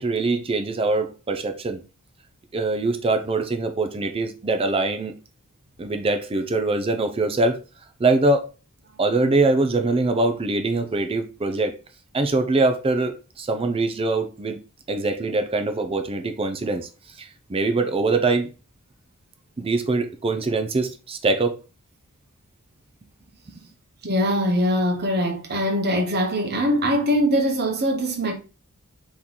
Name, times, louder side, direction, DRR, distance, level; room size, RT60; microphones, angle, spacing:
voice 1, 0.0-1.8 2.5-5.1 5.8-7.6 8.0-8.5 9.0-11.8 12.1-14.6 14.9-16.9 17.2-18.5 19.6-21.5 23.5-23.6, right 3 dB, 25° right, 0.4 m, -23 dB
voice 2, 24.0-28.3, equal, 45° right, 1.0 m, -22 dB
3.7 x 3.0 x 3.9 m
head